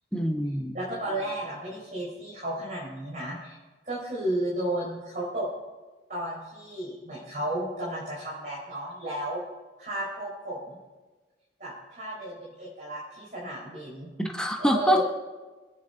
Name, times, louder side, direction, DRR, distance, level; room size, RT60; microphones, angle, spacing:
voice 1, 0.1-0.7 14.2-15.0, equal, 5° left, 1 dB, 1.1 m, -25 dB
voice 2, 0.7-3.6 3.8-5.5 6.1-9.4 9.8-10.8 11.6-14.1 14.6-15.0, right 1 dB, 45° right, -6 dB, 4.6 m, -33 dB
26.0 x 9.6 x 4.0 m, 1.3 s
head